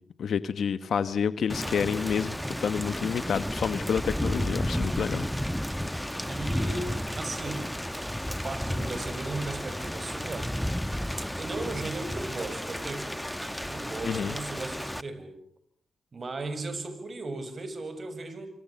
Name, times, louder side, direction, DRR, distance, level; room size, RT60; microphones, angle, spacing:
voice 1, 0.2-5.3 14.0-14.3, left 7 dB, 75° left, 13 dB, 1.2 m, -29 dB
Thunder / Rain, 1.5-15.0, equal, 5° left, 1.1 m, -32 dB
voice 2, 6.3-7.7 8.4-10.5 11.4-13.2 13.6-15.3 16.1-18.5, right 2 dB, 50° right, 11 dB, 6.7 m, -36 dB
27.0 x 25.5 x 7.3 m, 0.62 s
cardioid pair, 50°, 0 cm